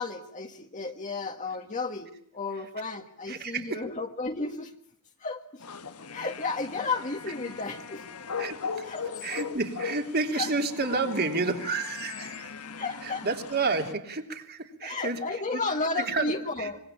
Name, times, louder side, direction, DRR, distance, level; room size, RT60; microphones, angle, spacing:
voice 1, 0.0-4.7 5.2-5.6 6.1-8.0 8.8-9.2 10.3-10.5 12.8-13.3 14.8-16.8, left 3 dB, 35° left, 2 dB, 1.7 m, -33 dB
voice 2, 3.3-3.8 8.4-8.9 9.2-12.5 13.0-15.2 15.5-15.6 16.0-16.3 16.6-16.7, right 3 dB, 45° right, 5 dB, 3.4 m, -30 dB
sound 1, 5.6-13.9, left 6 dB, 85° left, 1.6 m, -39 dB
25.5 x 22.5 x 8.6 m, 0.63 s
head